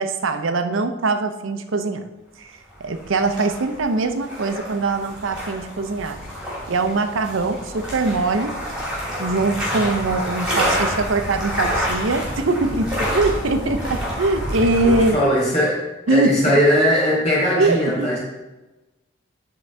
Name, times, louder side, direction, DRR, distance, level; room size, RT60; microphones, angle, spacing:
voice 1, 0.0-2.1 2.4-2.5 2.8-6.2 6.7-8.5 9.2-12.9 13.1-15.4 16.1-16.5 17.6-18.2, right 3 dB, 80° right, 8 dB, 0.6 m, -22 dB
sound 1, 2.7-15.1, equal, 5° right, 2.7 m, -28 dB
voice 2, 14.8-15.8 16.1-18.2, equal, 35° left, -4 dB, 2.8 m, -19 dB
10.5 x 3.8 x 4.5 m, 1.1 s
head